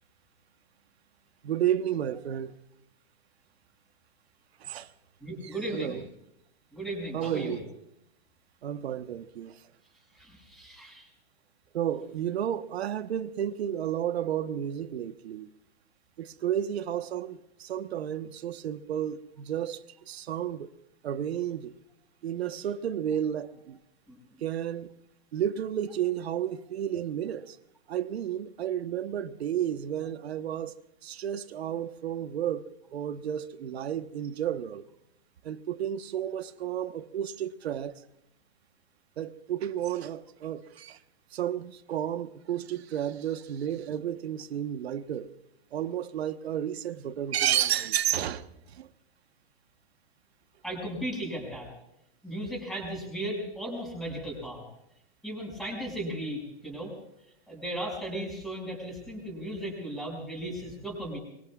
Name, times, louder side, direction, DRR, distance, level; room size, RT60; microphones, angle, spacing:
voice 1, 1.4-2.5 4.6-4.9 5.7-6.0 7.1-7.6 8.6-9.6 11.7-15.5 16.2-20.7 21.0-21.7 22.2-23.8 24.4-24.9 25.3-27.6 27.9-30.7 31.0-34.9 35.4-37.9 39.2-41.0 41.3-45.3 45.7-48.5 48.7-48.9, right 10 dB, 80° right, 1.2 m, -32 dB
voice 2, 5.2-6.0 6.7-7.6 10.1-11.1 24.1-24.2 50.6-51.7 52.2-54.6 55.2-56.9 57.5-61.2, right 1 dB, ahead, 5.9 m, -36 dB
24.5 x 23.5 x 2.4 m
supercardioid pair, 170°, 31 cm